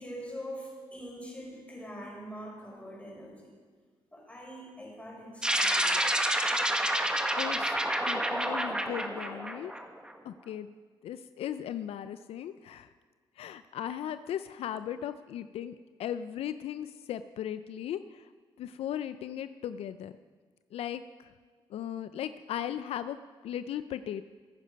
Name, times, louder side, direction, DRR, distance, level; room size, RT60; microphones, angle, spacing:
voice 1, 0.0-3.5 4.1-6.0, equal, 15° left, -3 dB, 4.9 m, -43 dB
sound 1, 5.4-10.1, right 1 dB, 10° right, 1.2 m, -29 dB
voice 2, 7.4-7.8 8.0-9.7 10.2-10.7 11.0-12.9 13.4-18.2 18.6-20.1 20.7-21.0 21.7-23.2 23.4-24.2, left 10 dB, 80° left, 12 dB, 0.4 m, -37 dB
15.5 x 9.3 x 5.2 m, 1.5 s
cardioid pair, 90°, 10 cm